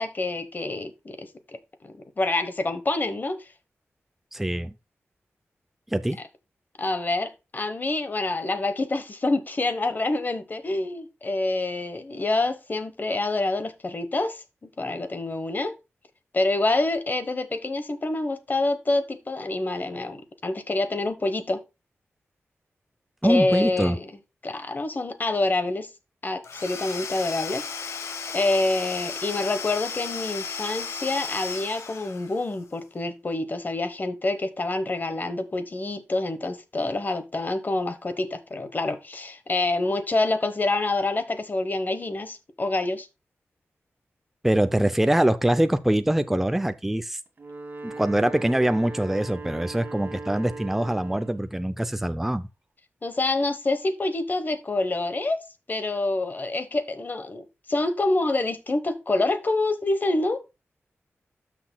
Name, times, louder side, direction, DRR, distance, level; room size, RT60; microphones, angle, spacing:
voice 1, 0.0-1.6 1.8-3.5 6.8-15.7 16.3-21.6 23.2-24.1 24.4-25.9 26.2-43.1 53.0-60.4, left 2 dB, 40° left, 1.1 m, -27 dB
voice 2, 4.3-4.7 5.9-6.2 23.2-24.0 44.4-47.2 47.8-52.5, right 1 dB, 5° right, 0.5 m, -23 dB
Domestic sounds home sounds / Tools, 26.4-32.5, left 5 dB, 80° left, 1.0 m, -35 dB
Wind instrument woodwind instrument, 47.3-51.5, right 3 dB, 40° right, 1.6 m, -39 dB
12.5 x 6.0 x 2.2 m
wide cardioid pair, 90°, 5 cm